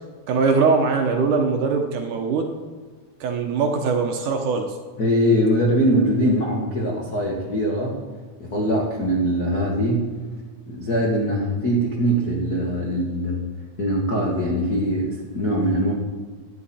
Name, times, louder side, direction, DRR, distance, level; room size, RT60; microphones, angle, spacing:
voice 1, 0.3-2.5 3.2-4.7, right 4 dB, 70° right, 3 dB, 2.2 m, -21 dB
voice 2, 5.0-8.0 8.4-10.2 10.7-13.4 13.8-15.9, equal, 70° left, -2 dB, 0.8 m, -22 dB
17.5 x 11.5 x 4.3 m, 1.4 s
omnidirectional pair, 4.5 m